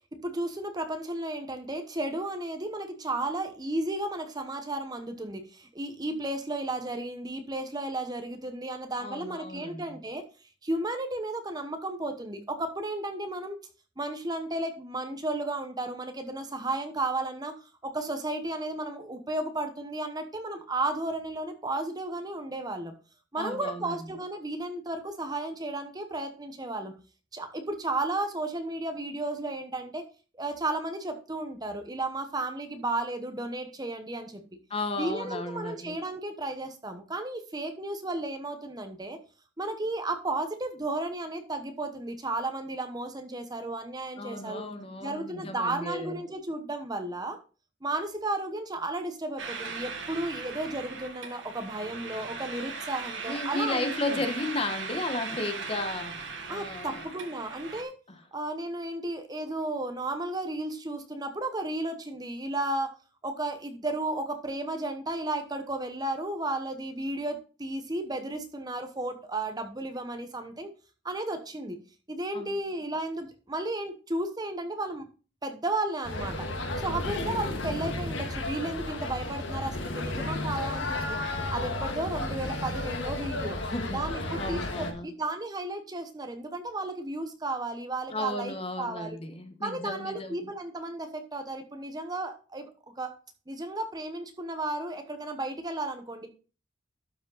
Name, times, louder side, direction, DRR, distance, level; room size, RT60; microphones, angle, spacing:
voice 1, 0.2-10.2 10.6-13.6 14.0-17.5 17.8-22.9 23.3-26.9 27.3-30.0 30.4-34.4 35.0-39.2 39.6-44.6 45.0-47.4 47.8-54.2 56.5-57.9 58.3-62.9 63.2-70.7 71.0-71.8 72.1-75.0 75.4-76.5 76.8-81.0 81.5-83.6 83.9-89.2 89.6-92.6 93.0-93.1 93.5-96.3, right 2 dB, 20° right, 1.0 m, -33 dB
voice 2, 9.0-10.0 23.4-24.0 34.7-36.0 44.2-46.2 53.3-57.1 58.1-58.2 72.3-72.6 77.0-77.7 83.6-85.1 88.1-90.5, left 2 dB, 30° left, 1.0 m, -34 dB
sound 1, 49.4-57.8, right 4 dB, 70° right, 1.5 m, -38 dB
sound 2, 76.0-84.9, left 2 dB, 70° left, 1.5 m, -33 dB
12.0 x 5.1 x 4.0 m
head